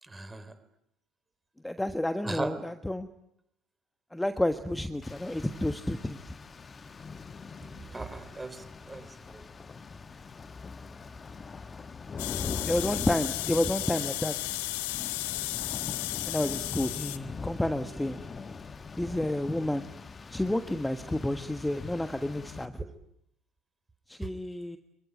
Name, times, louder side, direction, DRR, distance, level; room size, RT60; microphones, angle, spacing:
voice 1, 0.0-0.5 2.2-2.5 7.7-9.4 22.8-22.9 24.2-24.3, right 3 dB, 15° right, 12 dB, 3.9 m, -38 dB
voice 2, 1.6-3.1 4.1-6.2 12.6-14.3 16.3-18.2 19.0-19.9 20.3-22.8 24.1-24.8, left 1 dB, 5° left, 9 dB, 1.5 m, -30 dB
Rain, 5.0-22.7, left 5 dB, 25° left, 1.5 m, -42 dB
sound 1, 12.2-17.2, left 19 dB, 65° left, 1.1 m, -34 dB
26.0 x 23.0 x 9.2 m, 0.77 s
figure-of-eight pair, 60°, 0 cm